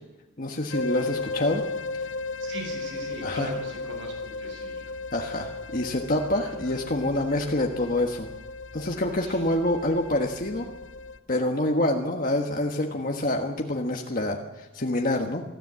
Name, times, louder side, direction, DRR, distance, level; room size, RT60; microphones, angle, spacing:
voice 1, 0.4-1.6 3.2-3.5 5.1-8.3 8.7-10.6 11.3-15.4, left 1 dB, 50° left, 1 dB, 1.4 m, -26 dB
sound 1, 0.7-11.2, left 3 dB, 90° left, 1.0 m, -36 dB
voice 2, 2.4-4.9 9.2-9.4, right 2 dB, 85° right, 2 dB, 7.7 m, -39 dB
25.0 x 14.0 x 7.6 m, 1.2 s
head